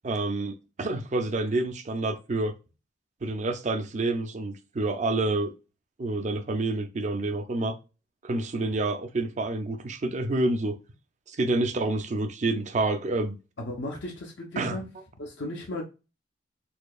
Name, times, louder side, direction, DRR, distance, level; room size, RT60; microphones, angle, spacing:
voice 1, 0.0-2.5 3.2-5.5 6.0-7.8 8.2-10.8 11.3-13.4 14.6-14.8, right 2 dB, 40° right, 0.5 m, -28 dB
voice 2, 13.6-14.9 15.2-15.8, left 1 dB, 75° left, 0.7 m, -35 dB
4.3 x 2.7 x 2.3 m
head